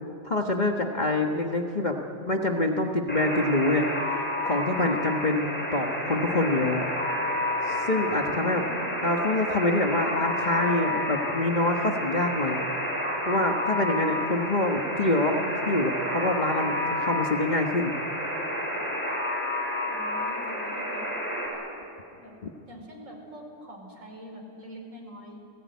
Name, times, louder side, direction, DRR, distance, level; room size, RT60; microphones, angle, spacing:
voice 1, 0.2-2.0 2.3-6.9 7.7-8.6 9.0-12.6 13.2-17.9 22.4-22.5, left 2 dB, 35° left, 2 dB, 1.4 m, -26 dB
Alarm, 3.1-21.5, left 1 dB, 10° left, 6.3 m, -30 dB
voice 2, 8.4-8.9 19.8-21.1 22.1-22.3 22.7-25.4, equal, 70° right, 1 dB, 4.9 m, -45 dB
29.5 x 18.5 x 9.4 m, 2.8 s
omnidirectional pair, 1.4 m